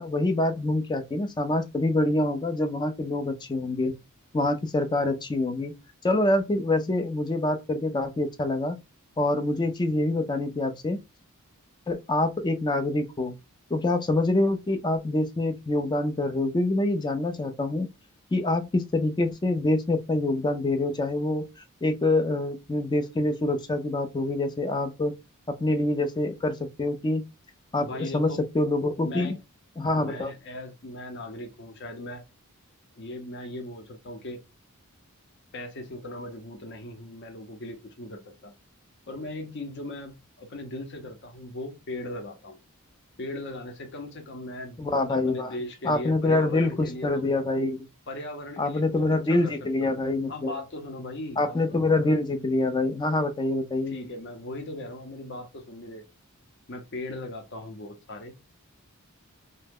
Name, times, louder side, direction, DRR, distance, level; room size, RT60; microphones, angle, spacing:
voice 1, 0.0-3.9 4.3-5.7 6.0-8.8 9.2-11.0 11.9-13.3 13.7-17.9 18.3-21.4 21.8-25.2 25.5-27.2 27.7-29.4 29.8-30.3 44.8-45.5 45.8-47.8 48.6-50.5 51.4-54.0, left 2 dB, 20° left, 0.3 m, -26 dB
voice 2, 27.8-28.4 29.0-29.4 29.9-32.2 33.0-34.4 35.5-38.5 39.1-42.6 43.2-47.3 48.1-49.0 49.2-49.5 49.8-50.0 50.3-52.0 53.9-56.1 56.7-58.3, left 2 dB, 50° left, 0.6 m, -38 dB
2.8 x 2.1 x 3.5 m
head